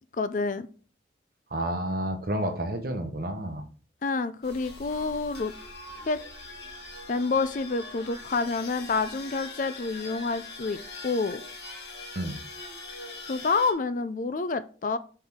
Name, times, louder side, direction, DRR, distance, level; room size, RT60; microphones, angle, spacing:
voice 1, 0.2-0.7 4.0-5.5 6.1-6.2 7.1-10.8 11.0-11.4 13.3-15.0, left 4 dB, 45° left, 13 dB, 0.4 m, -28 dB
voice 2, 1.5-3.6 12.1-12.4, right 1 dB, 50° right, 6 dB, 1.0 m, -30 dB
sound 1, 4.4-13.7, left 3 dB, 60° left, 1.8 m, -42 dB
6.1 x 5.5 x 3.5 m, 0.39 s
head